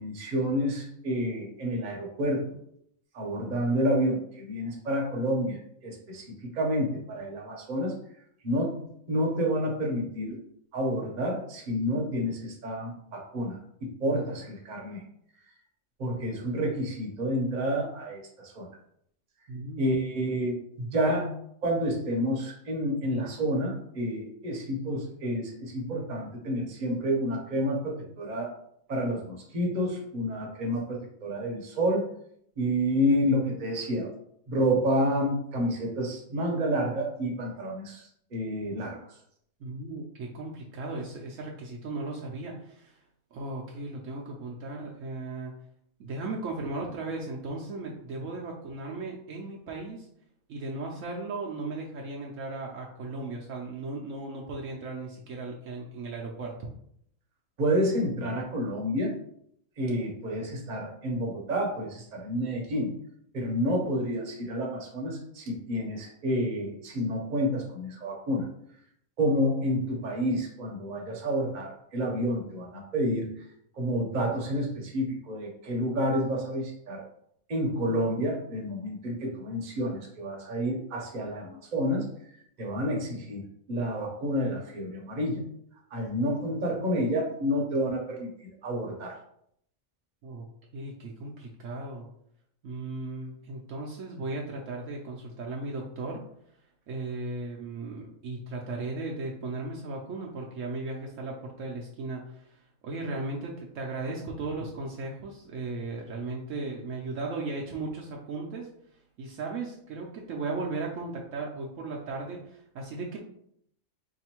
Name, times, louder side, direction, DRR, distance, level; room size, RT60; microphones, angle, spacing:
voice 1, 0.0-2.5 3.1-7.9 8.4-10.4 10.7-15.0 16.0-18.7 19.8-21.3 21.6-28.5 28.9-32.0 32.6-34.1 34.5-38.0 38.3-39.0 57.6-59.1 59.8-62.9 63.3-68.5 69.2-73.3 73.7-77.0 77.5-82.1 82.6-83.4 83.7-85.4 85.9-89.1, equal, 40° right, -1 dB, 0.9 m, -29 dB
voice 2, 19.5-20.0 39.6-43.0 43.3-45.6 46.0-50.1 50.5-56.7 90.2-90.5 90.7-92.1 92.6-96.2 96.9-108.7 109.2-113.2, right 3 dB, 70° right, -1 dB, 0.9 m, -36 dB
4.7 x 2.6 x 2.9 m, 0.70 s
omnidirectional pair, 1.5 m